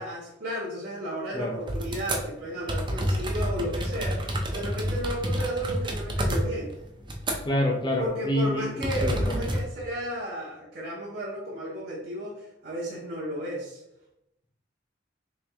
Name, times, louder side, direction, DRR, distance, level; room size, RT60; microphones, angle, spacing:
voice 1, 0.0-6.8 8.0-13.8, equal, 55° right, -7 dB, 0.8 m, -33 dB
sound 1, 1.7-2.2 2.7-7.7 7.9-8.1 8.8-9.6, equal, 25° right, 0.6 m, -29 dB
voice 2, 7.5-9.4, left 1 dB, 25° left, 1 dB, 0.6 m, -27 dB
3.1 x 3.0 x 3.5 m, 0.82 s
head